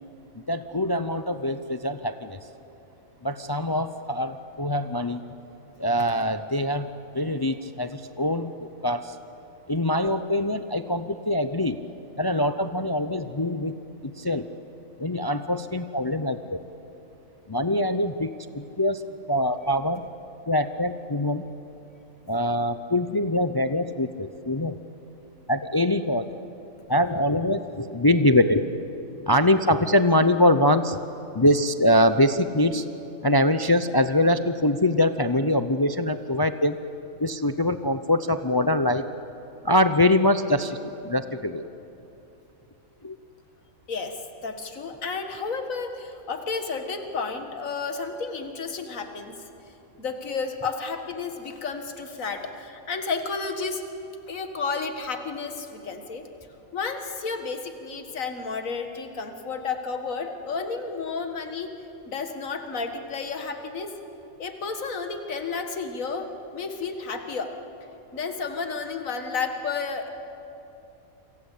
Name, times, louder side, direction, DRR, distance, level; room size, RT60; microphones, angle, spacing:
voice 1, 0.5-2.4 3.2-5.2 5.8-6.9 7.1-9.2 9.7-11.8 12.2-13.8 14.0-14.5 15.0-16.6 17.5-19.0 19.3-20.0 20.5-21.5 22.3-24.8 25.5-26.2 26.9-28.6 28.9-31.0 31.3-32.8 33.2-36.8 37.2-39.1 39.6-41.6 43.0-43.2, left 1 dB, 30° left, 10 dB, 0.4 m, -23 dB
voice 2, 44.4-49.4 50.0-53.8 54.3-56.2 56.7-61.7 62.1-63.9 64.4-66.3 66.5-67.5 68.1-70.1, left 4 dB, 65° left, 6 dB, 2.2 m, -31 dB
28.0 x 25.5 x 8.4 m, 2.9 s
omnidirectional pair, 1.5 m